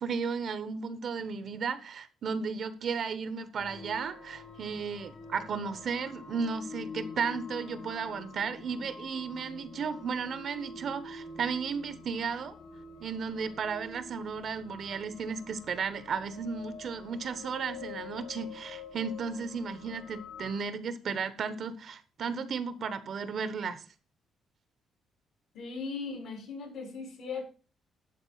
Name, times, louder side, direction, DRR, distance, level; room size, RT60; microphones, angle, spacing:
voice 1, 0.0-12.5 13.0-23.8, right 5 dB, 60° right, 1.0 m, -34 dB
sound 1, 3.6-20.6, left 4 dB, 60° left, 1.9 m, -47 dB
voice 2, 25.5-27.4, left 4 dB, 75° left, 4.3 m, -38 dB
11.5 x 4.0 x 5.6 m
cardioid pair, 90°, 0 cm